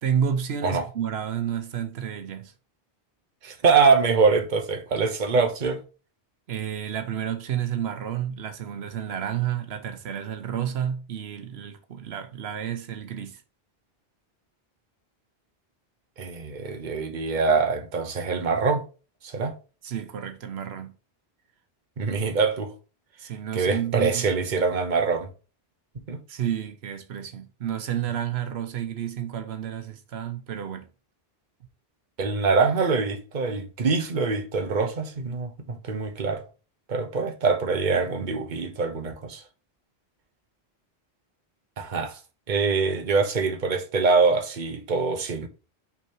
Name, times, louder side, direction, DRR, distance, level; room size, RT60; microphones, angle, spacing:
voice 1, 0.0-2.5 6.5-13.4 19.8-21.0 23.2-24.3 26.3-30.9, right 9 dB, 90° right, 1.0 m, -30 dB
voice 2, 3.4-5.8 16.2-18.8 19.2-19.5 22.0-22.7 23.5-25.3 26.1-26.2 32.2-36.4 36.9-39.4 41.8-42.2 42.5-45.5, right 4 dB, 50° right, 1.1 m, -24 dB
5.8 x 3.6 x 4.6 m
omnidirectional pair, 1.0 m